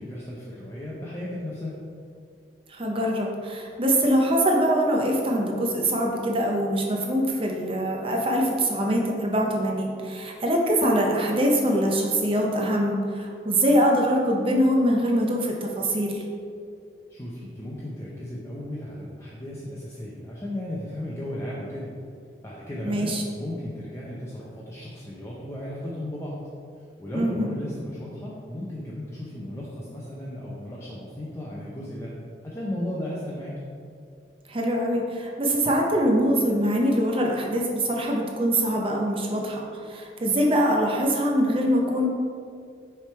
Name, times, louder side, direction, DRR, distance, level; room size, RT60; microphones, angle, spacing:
voice 1, 0.0-1.7 17.1-21.9 22.4-26.4 27.0-32.1 32.4-33.6, left 1 dB, 15° left, -6 dB, 0.6 m, -35 dB
voice 2, 2.7-16.2 22.8-23.2 27.1-27.5 34.5-42.1, equal, 30° right, -1 dB, 0.7 m, -23 dB
6.4 x 3.4 x 4.3 m, 2.4 s
head